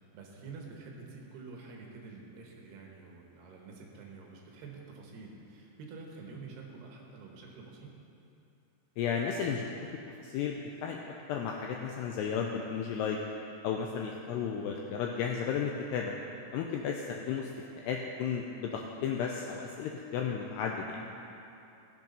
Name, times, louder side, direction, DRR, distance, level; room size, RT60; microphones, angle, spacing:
voice 1, 0.1-7.9 20.9-21.0, right 4 dB, 70° right, 0 dB, 2.9 m, -48 dB
voice 2, 9.0-9.9 10.2-11.0 11.3-13.2 13.6-16.1 16.5-17.5 17.8-21.0, left 7 dB, 85° left, 1 dB, 2.3 m, -33 dB
16.0 x 7.5 x 5.4 m, 2.8 s
omnidirectional pair, 5.6 m